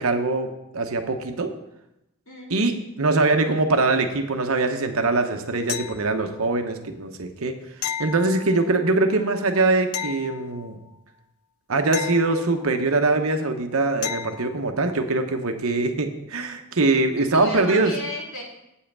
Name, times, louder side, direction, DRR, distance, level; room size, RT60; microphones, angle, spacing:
voice 1, 0.0-1.5 2.5-2.7 3.0-7.5 8.0-10.8 11.7-17.9, right 3 dB, 70° right, 6 dB, 0.9 m, -22 dB
voice 2, 2.3-2.7 17.3-18.4, left 1 dB, 65° left, -3 dB, 3.1 m, -34 dB
sound 1, 5.7-6.5 7.8-8.9 9.9-11.0 11.9-13.0 14.0-14.6 17.4-17.5, left 9 dB, 85° left, 0.4 m, -34 dB
8.2 x 5.6 x 6.7 m, 0.88 s
head